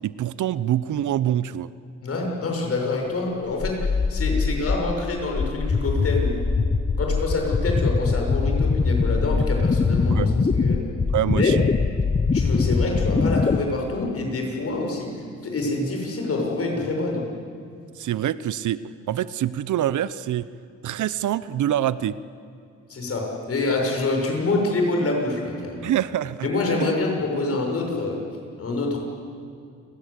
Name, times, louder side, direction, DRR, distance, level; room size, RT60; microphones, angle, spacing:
voice 1, 0.0-1.7 10.1-10.3 11.1-11.6 18.0-20.5 20.8-22.2 25.8-26.5 26.8-26.9, right 11 dB, 75° right, 16 dB, 0.8 m, -25 dB
voice 2, 2.0-6.4 7.0-10.8 11.2-11.5 12.3-15.1 15.4-17.2 22.9-25.9 26.4-28.2 28.6-29.0, left 2 dB, 50° left, 1 dB, 6.5 m, -26 dB
sound 1, 3.6-13.6, left 4 dB, 25° left, 0.9 m, -22 dB
29.0 x 19.5 x 8.3 m, 2.4 s
cardioid pair, 110°, 30 cm